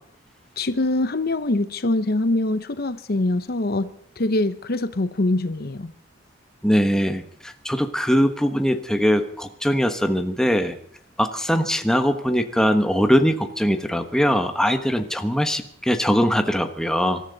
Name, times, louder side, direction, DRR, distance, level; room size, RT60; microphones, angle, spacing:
voice 1, 0.6-5.9, left 2 dB, 55° left, 0.8 m, -24 dB
voice 2, 6.6-10.8 11.2-17.2, equal, 5° left, 1.2 m, -21 dB
26.0 x 13.0 x 4.0 m
head